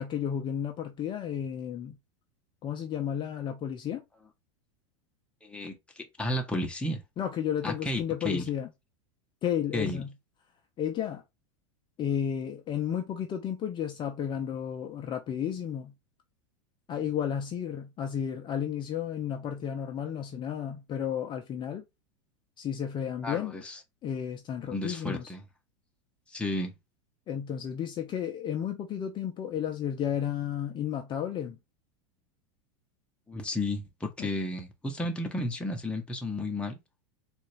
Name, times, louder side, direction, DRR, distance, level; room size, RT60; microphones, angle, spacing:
voice 1, 0.0-2.0 2.6-4.0 7.2-8.7 9.4-10.1 10.8-11.2 12.0-15.9 16.9-21.8 22.6-23.6 24.0-25.3 27.3-31.6 34.2-34.3, left 9 dB, 30° left, 0.6 m, -32 dB
voice 2, 5.4-7.0 7.6-8.5 9.7-10.0 23.2-23.8 24.7-25.4 26.3-26.7 33.3-36.8, left 1 dB, 5° left, 0.9 m, -33 dB
3.9 x 2.5 x 3.2 m
supercardioid pair, 120°, 17 cm